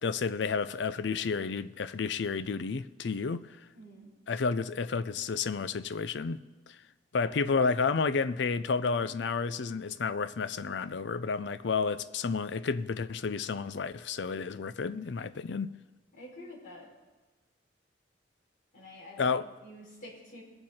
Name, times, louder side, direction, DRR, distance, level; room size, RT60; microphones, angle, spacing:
voice 1, 0.0-3.6 4.3-6.4 6.7-6.8 7.1-15.8 19.2-19.5, left 5 dB, 65° left, 0.5 m, -31 dB
voice 2, 3.7-4.1 7.2-7.3 16.2-16.9 18.7-19.3 19.6-20.4, left 1 dB, 45° left, 5.0 m, -48 dB
21.0 x 8.6 x 4.4 m
head